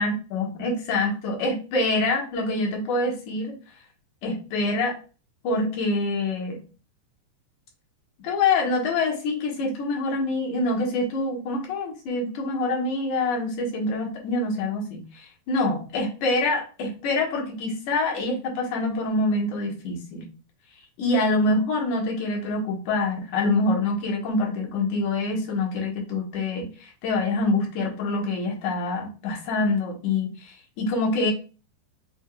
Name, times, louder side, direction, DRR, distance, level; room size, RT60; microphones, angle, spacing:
voice 1, 0.0-3.5 4.2-5.0 5.4-6.6 8.2-20.3 21.0-31.3, left 2 dB, 65° left, 0 dB, 2.5 m, -25 dB
5.7 x 3.5 x 2.3 m, 0.34 s
omnidirectional pair, 4.1 m